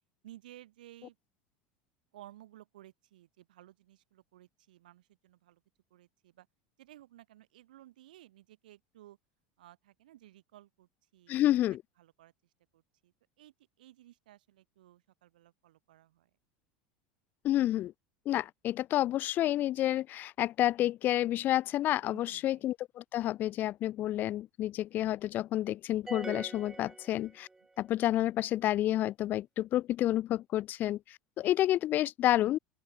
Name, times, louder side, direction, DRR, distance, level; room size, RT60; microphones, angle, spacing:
voice 1, 0.2-1.2 2.1-5.6 5.9-6.5 6.8-9.2 9.6-11.4 12.0-12.3 12.7-16.3 22.1-22.6, right 14 dB, 85° right, 5.7 m, -56 dB
voice 2, 11.3-11.8 17.4-17.9 18.3-27.5 27.8-32.6, left 13 dB, 45° left, 0.4 m, -29 dB
sound 1, 26.1-27.8, right 3 dB, 10° right, 1.0 m, -44 dB
open air
hypercardioid pair, 100°, 4 cm